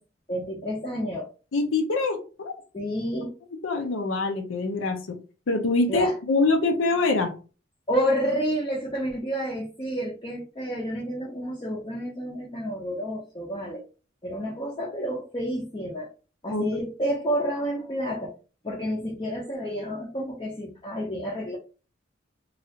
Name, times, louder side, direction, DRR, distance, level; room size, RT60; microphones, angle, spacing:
voice 1, 0.3-1.3 2.7-3.3 5.9-6.2 7.9-13.8 14.2-16.1 16.4-18.3 18.6-21.6, equal, 25° left, -3 dB, 0.5 m, -29 dB
voice 2, 1.5-2.5 3.6-5.2 5.5-7.3 16.5-16.6, left 3 dB, 85° left, 5 dB, 0.6 m, -24 dB
3.1 x 2.4 x 2.7 m, 0.35 s
head